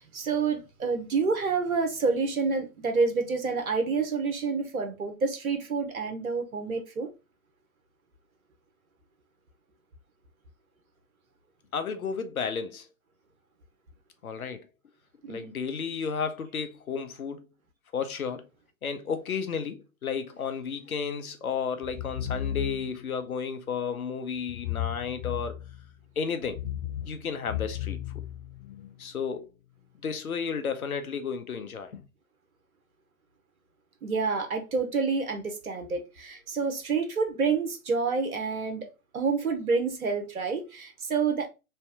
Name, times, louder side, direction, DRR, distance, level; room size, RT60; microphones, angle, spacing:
voice 1, 0.0-7.1 15.2-15.5 34.0-38.9 39.1-41.5, right 4 dB, 90° right, 0.9 m, -28 dB
voice 2, 11.7-12.9 14.2-14.6 15.3-17.5 17.9-18.5 18.8-25.5 26.2-26.6 27.1-28.0 29.0-29.5 30.0-32.0, left 6 dB, 90° left, 0.8 m, -32 dB
sound 1, 21.8-23.1 24.5-25.9 26.4-28.9, left 10 dB, 45° left, 0.5 m, -35 dB
3.3 x 2.8 x 3.3 m
hypercardioid pair, 115°, 41 cm